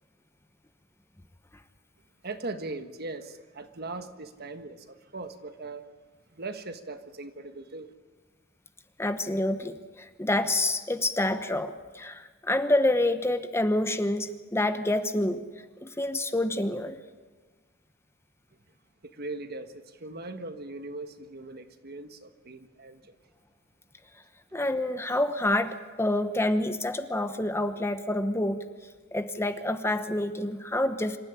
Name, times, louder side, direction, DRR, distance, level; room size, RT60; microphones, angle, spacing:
voice 1, 2.2-5.9 6.3-7.9 19.0-23.2, right 2 dB, 50° right, 9 dB, 1.4 m, -39 dB
voice 2, 9.0-15.4 15.8-17.0 24.5-28.6 29.1-31.2, left 1 dB, 15° left, 9 dB, 0.9 m, -27 dB
26.0 x 14.0 x 9.9 m, 1.3 s
head